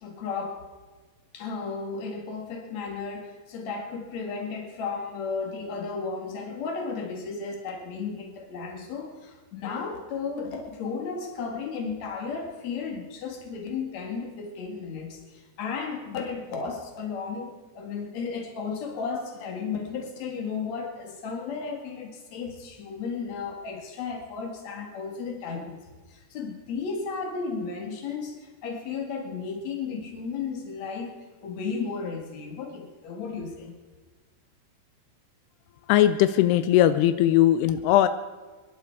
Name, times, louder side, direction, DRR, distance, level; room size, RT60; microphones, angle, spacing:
voice 1, 0.0-0.6 1.3-25.8 26.1-31.2 31.4-33.7, left 5 dB, 50° left, 2 dB, 2.6 m, -34 dB
voice 2, 35.9-38.1, left 12 dB, 90° left, 12 dB, 2.3 m, -19 dB
25.5 x 11.0 x 4.7 m, 1.3 s
omnidirectional pair, 5.3 m